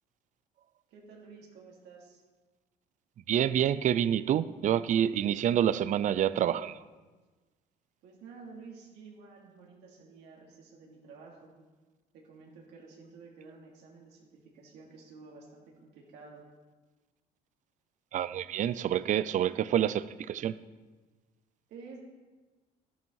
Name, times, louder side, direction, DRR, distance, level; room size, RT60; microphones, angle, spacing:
voice 1, 0.9-2.2 8.0-11.5 12.1-16.4 21.7-22.0, right 4 dB, 85° right, -2 dB, 2.9 m, -51 dB
voice 2, 3.3-6.8 18.1-20.6, right 10 dB, 50° right, 17 dB, 0.5 m, -27 dB
12.0 x 11.0 x 4.7 m, 1.3 s
cardioid pair, 110°, 17 cm